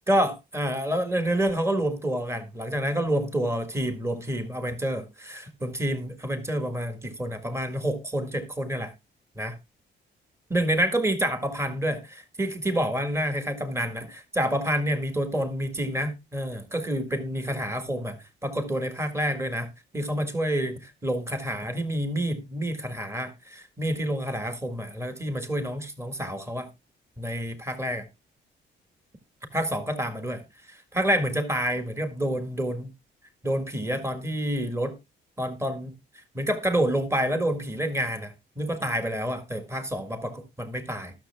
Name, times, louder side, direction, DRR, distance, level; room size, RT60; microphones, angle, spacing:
voice 1, 0.1-8.9 9.3-9.6 10.5-18.2 18.4-19.7 19.9-26.7 27.2-28.0 29.5-30.4 30.7-32.9 33.4-35.0 35.4-35.9 36.3-41.1, equal, 15° right, 1.7 m, -28 dB
19.5 x 6.6 x 2.2 m
cardioid pair, 90°, 20 cm